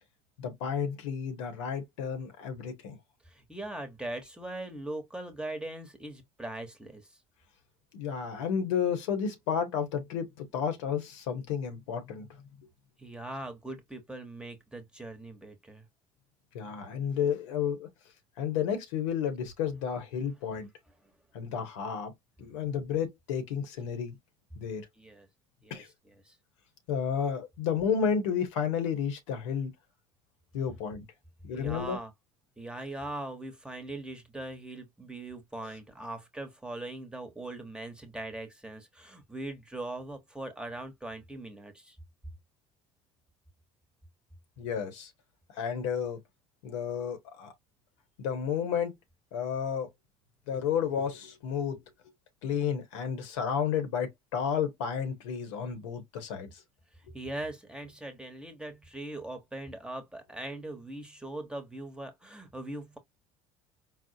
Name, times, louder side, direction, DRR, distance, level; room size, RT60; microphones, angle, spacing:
voice 1, 0.4-3.0 7.9-12.3 16.5-17.9 18.4-20.7 21.3-22.1 22.4-24.2 24.6-24.9 25.7-25.9 26.9-29.7 30.5-31.0 31.4-32.0 44.6-45.1 45.5-46.2 46.6-47.5 48.2-49.0 49.3-49.9 50.5-51.8 52.4-56.6, left 7 dB, 90° left, 1.0 m, -31 dB
voice 2, 3.2-7.2 13.0-15.9 21.0-21.1 25.0-25.3 25.6-26.4 31.5-32.1 32.6-42.0 56.9-63.0, right 1 dB, 5° right, 0.9 m, -41 dB
4.2 x 2.0 x 2.6 m
supercardioid pair, 95°, 15 cm